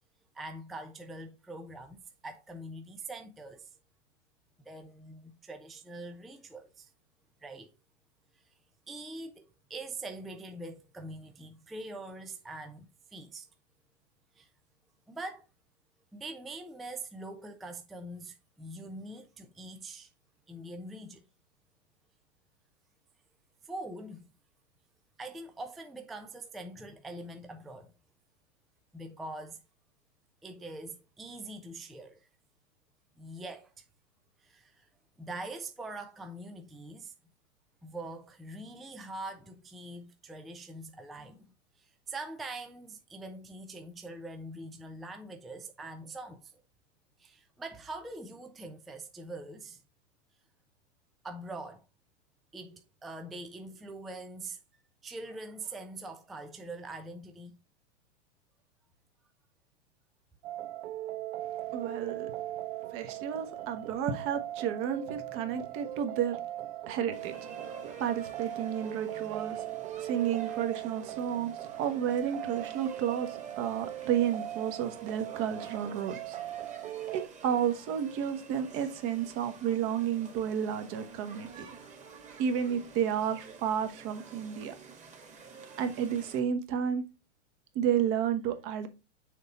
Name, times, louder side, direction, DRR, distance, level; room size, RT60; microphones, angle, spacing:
voice 1, 0.3-3.8 4.6-6.9 7.4-7.7 8.3-8.6 8.9-13.5 14.3-14.5 15.1-15.5 16.1-20.1 20.5-21.2 23.6-24.3 25.2-27.9 28.9-29.6 30.4-32.3 33.2-33.8 34.4-34.9 35.2-37.1 37.8-46.6 47.2-49.8 51.2-51.9 52.5-54.6 55.0-57.6, right 2 dB, ahead, 0.3 m, -43 dB
sound 1, 60.4-77.3, right 14 dB, 60° right, 0.7 m, -39 dB
voice 2, 61.7-62.3 62.9-66.4 66.9-67.3 68.0-69.6 70.0-76.4 77.1-81.7 82.4-84.7 85.8-87.0 87.7-88.9, right 9 dB, 35° right, 1.2 m, -31 dB
sound 2, 67.1-86.4, right 5 dB, 20° right, 1.7 m, -49 dB
6.6 x 3.9 x 4.2 m
hypercardioid pair, 120°, 36 cm